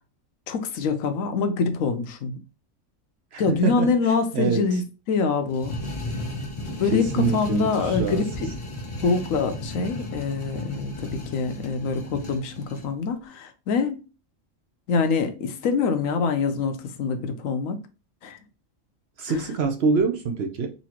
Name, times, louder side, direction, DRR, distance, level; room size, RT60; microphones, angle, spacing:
voice 1, 0.5-2.4 3.4-4.8 5.1-5.7 6.8-8.5 9.0-14.0 14.9-17.8 18.2-18.4 19.3-19.4, left 4 dB, 75° left, 1.1 m, -25 dB
voice 2, 3.3-3.9 4.3-4.7 6.9-8.2 19.2-20.7, right 4 dB, 60° right, 0.8 m, -25 dB
sound 1, 5.5-12.9, left 1 dB, 35° left, 0.5 m, -34 dB
4.1 x 2.8 x 2.9 m
omnidirectional pair, 1.4 m